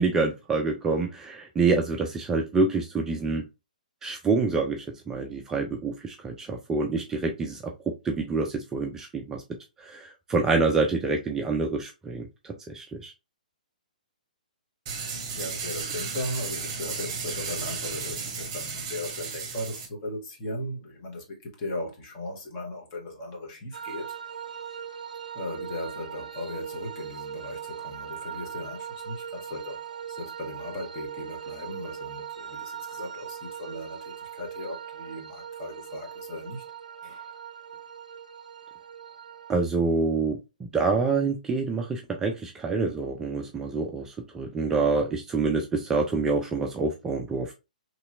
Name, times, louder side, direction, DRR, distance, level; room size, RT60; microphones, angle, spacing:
voice 1, 0.0-3.4 4.0-9.4 9.8-13.1 39.5-40.4 40.7-47.5, right 4 dB, 10° right, 0.4 m, -27 dB
sound 1, 14.9-19.9, right 5 dB, 35° right, 0.8 m, -34 dB
voice 2, 15.3-24.2 25.3-29.8 30.1-36.6 37.0-37.3, left 1 dB, 35° left, 1.3 m, -37 dB
sound 2, 23.7-39.6, right 8 dB, 70° right, 0.5 m, -40 dB
3.0 x 2.8 x 2.5 m
figure-of-eight pair, 125°, 4 cm